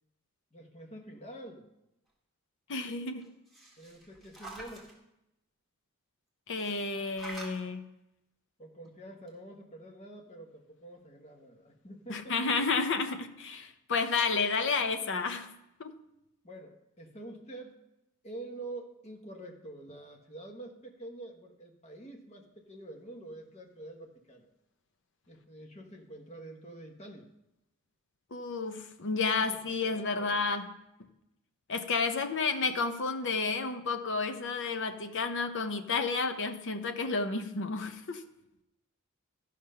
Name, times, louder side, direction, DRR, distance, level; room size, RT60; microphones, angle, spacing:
voice 1, 0.5-1.7 3.8-5.0 8.6-12.4 16.4-17.8 18.2-24.5 25.3-27.3 29.4-29.9 30.2-30.5, right 2 dB, 30° left, 3 dB, 1.2 m, -47 dB
voice 2, 2.7-3.3 6.5-7.8 12.1-15.5 15.8-15.9 28.3-30.7 31.7-38.2, left 4 dB, 55° left, 8 dB, 0.8 m, -31 dB
sound 1, 3.2-4.9 6.6-7.6 8.9-9.0 9.3-9.4, right 2 dB, ahead, 1.7 m, -47 dB
13.5 x 5.1 x 5.6 m, 0.89 s
head